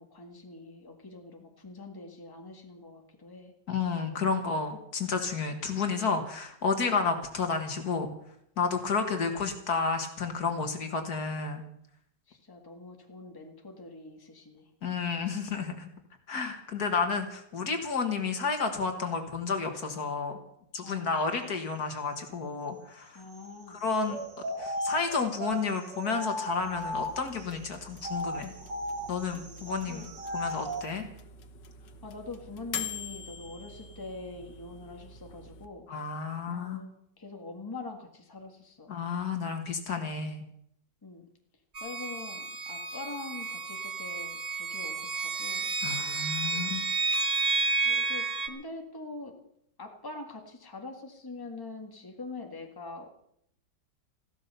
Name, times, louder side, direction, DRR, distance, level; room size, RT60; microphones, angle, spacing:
voice 1, 0.0-3.5 4.0-4.4 8.8-9.1 12.3-15.3 20.8-21.2 23.1-23.8 29.3-30.2 32.0-35.9 36.5-39.0 39.9-40.0 41.0-41.3 41.8-45.7 46.5-46.8 47.8-49.4 49.8-53.1, left 3 dB, 10° left, 3 dB, 1.7 m, -44 dB
voice 2, 3.7-8.1 8.6-11.6 14.8-15.9 16.3-20.3 20.7-23.2 23.7-24.2 24.6-28.5 29.1-30.1 30.3-31.1 35.9-36.8 38.9-40.4 45.8-46.8, left 5 dB, 60° left, 5 dB, 2.1 m, -31 dB
sound 1, 24.0-27.4 28.0-30.9, equal, 75° right, 2.5 m, -36 dB
sound 2, 26.6-35.7, left 6 dB, 75° left, 1.7 m, -44 dB
sound 3, 41.8-48.5, right 4 dB, 30° right, 0.8 m, -31 dB
15.0 x 12.0 x 6.8 m, 0.73 s
omnidirectional pair, 1.9 m